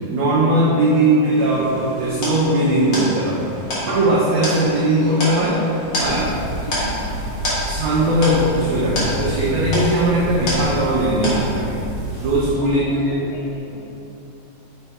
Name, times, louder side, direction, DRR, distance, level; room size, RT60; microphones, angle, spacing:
voice 1, 0.1-3.4 3.9-5.6 6.0-6.3 7.6-11.8 12.2-13.3, right 1 dB, 90° right, -6 dB, 1.6 m, -19 dB
voice 2, 1.1-1.7 6.6-7.2 12.6-13.9, left 2 dB, 80° left, -3 dB, 2.1 m, -35 dB
sound 1, 1.2-11.0, right 1 dB, 70° right, 1.7 m, -37 dB
sound 2, 2.2-11.0 11.2-11.8, left 1 dB, 60° left, 1.2 m, -28 dB
sound 3, 6.0-12.5, right 2 dB, 55° right, 1.3 m, -29 dB
6.8 x 3.5 x 4.2 m, 2.9 s
omnidirectional pair, 4.4 m